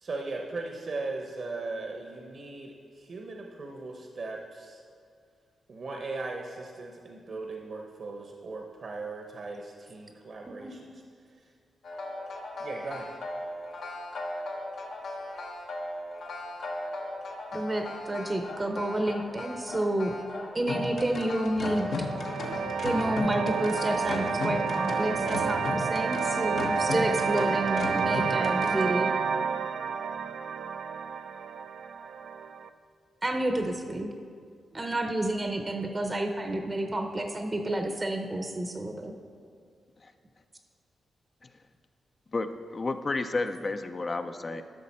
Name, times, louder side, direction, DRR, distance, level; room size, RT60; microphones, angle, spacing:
voice 1, 0.0-4.8 5.7-11.0 12.6-13.1, right 3 dB, 55° right, 1 dB, 0.8 m, -38 dB
sound 1, 11.8-28.8, left 2 dB, 70° left, 1.1 m, -36 dB
voice 2, 17.5-20.1 20.5-22.1 22.8-29.1 33.2-34.1 34.7-39.1, right 1 dB, 25° right, 4 dB, 0.6 m, -30 dB
sound 2, 21.6-32.7, right 6 dB, 70° right, 0.4 m, -30 dB
voice 3, 42.3-44.6, left 3 dB, 35° left, 8 dB, 0.4 m, -31 dB
11.5 x 6.4 x 4.3 m, 2.2 s
cardioid pair, 95°, 0 cm